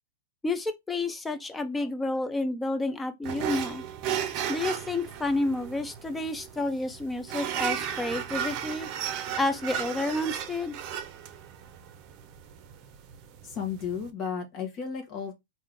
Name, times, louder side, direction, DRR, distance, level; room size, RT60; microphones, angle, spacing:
voice 1, 0.4-3.8 4.5-8.9 9.3-10.8, left 2 dB, 10° left, 0.7 m, -30 dB
sound 1, 3.2-14.1, right 9 dB, 45° right, 0.7 m, -35 dB
voice 2, 13.4-15.3, left 7 dB, 35° left, 1.2 m, -33 dB
3.6 x 2.7 x 3.5 m
hypercardioid pair, 120°, 0 cm